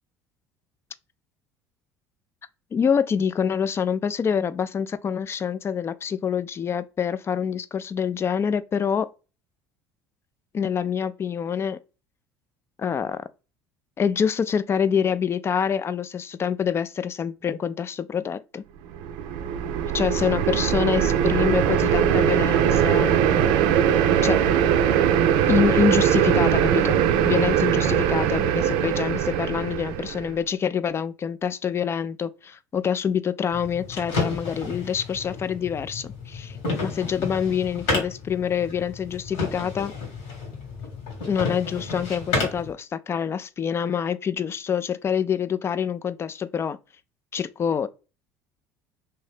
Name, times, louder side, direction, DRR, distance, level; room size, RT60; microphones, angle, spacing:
voice 1, 2.7-9.1 10.5-11.8 12.8-13.2 14.0-18.6 19.9-23.7 24.2-24.4 25.5-39.9 41.2-46.8 47.3-47.9, left 7 dB, 30° left, 0.3 m, -26 dB
sound 1, 18.9-30.3, right 9 dB, 70° right, 0.4 m, -21 dB
sound 2, 33.5-42.7, left 3 dB, 75° left, 1.6 m, -31 dB
2.7 x 2.7 x 3.4 m
hypercardioid pair, 80°, 8 cm